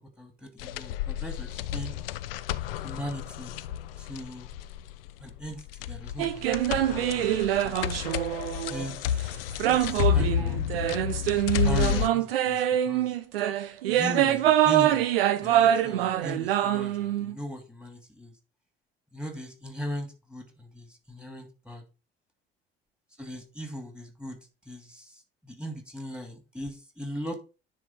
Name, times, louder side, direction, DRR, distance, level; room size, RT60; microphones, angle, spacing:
voice 1, 0.0-1.9 2.8-3.6 4.0-4.5 5.2-7.8 8.6-10.6 11.6-13.2 13.9-15.0 15.4-18.3 19.1-21.8 23.2-24.4 24.7-27.4, equal, 5° right, 5 dB, 2.6 m, -39 dB
sound 1, 0.6-12.1, left 9 dB, 75° left, 0.6 m, -31 dB
sound 2, 6.2-8.9 9.6-17.3, right 12 dB, 75° right, 0.8 m, -25 dB
9.9 x 3.9 x 5.3 m, 0.31 s
figure-of-eight pair, 55°, 29 cm